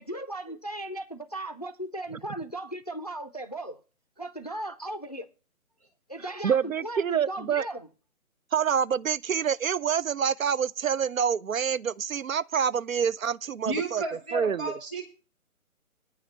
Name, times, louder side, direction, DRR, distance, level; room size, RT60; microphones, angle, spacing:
voice 1, 0.0-3.8 4.2-5.3 6.1-7.9, right 1 dB, 30° left, 0.4 m, -37 dB
voice 2, 6.4-7.7 8.5-14.0 14.3-14.7, right 7 dB, 70° right, 0.5 m, -27 dB
voice 3, 13.6-15.0, right 2 dB, 5° right, 0.7 m, -32 dB
9.6 x 6.4 x 6.7 m
figure-of-eight pair, 140°, 43 cm